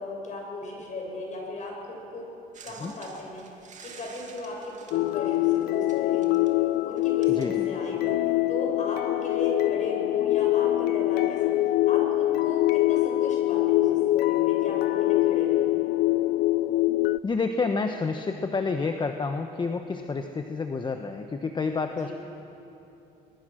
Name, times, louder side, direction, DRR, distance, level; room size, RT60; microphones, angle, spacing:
voice 1, 0.0-2.2 2.6-3.5 3.8-6.4 6.8-8.2 8.5-11.5 11.8-15.7 22.0-22.1, left 1 dB, 45° left, -1 dB, 6.9 m, -36 dB
sound 1, 2.5-8.2 9.2-9.3, right 6 dB, 45° right, 2.4 m, -50 dB
sound 2, 4.9-17.2, left 16 dB, 70° left, 0.4 m, -24 dB
voice 2, 7.3-7.7 17.2-22.1, left 4 dB, 25° left, 6 dB, 1.0 m, -29 dB
23.0 x 21.5 x 6.3 m, 2.8 s
cardioid pair, 110°, 17 cm